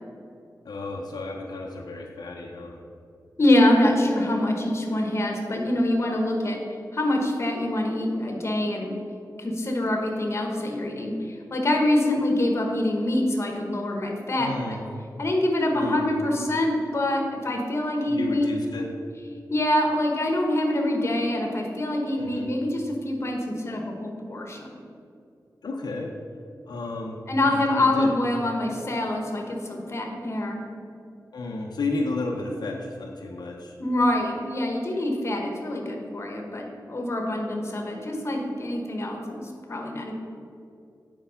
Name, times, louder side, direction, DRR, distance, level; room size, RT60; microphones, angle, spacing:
voice 1, 0.6-2.8 14.4-14.8 15.7-16.0 18.1-18.9 22.2-22.5 25.6-26.1 26.7-28.1 31.3-33.8, left 2 dB, 75° left, 0 dB, 0.7 m, -32 dB
voice 2, 3.4-6.6 6.9-8.9 9.4-14.8 15.2-18.5 19.5-24.7 27.3-30.6 33.8-40.1, left 1 dB, 40° left, 1 dB, 1.1 m, -25 dB
8.1 x 4.6 x 5.7 m, 2.5 s
wide cardioid pair, 145°, 7 cm